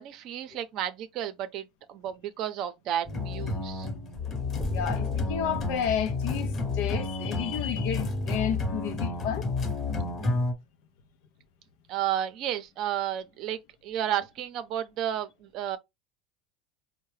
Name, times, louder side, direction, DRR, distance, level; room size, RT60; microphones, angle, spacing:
voice 1, 0.0-3.9 11.9-15.8, right 11 dB, 55° right, 0.6 m, -32 dB
sound 1, 3.1-10.5, left 3 dB, 30° left, 1.0 m, -30 dB
sound 2, 4.1-8.3, left 1 dB, 10° left, 0.7 m, -41 dB
voice 2, 4.6-9.5, left 8 dB, 70° left, 0.5 m, -31 dB
4.4 x 2.1 x 3.2 m
hypercardioid pair, 100°, 0 cm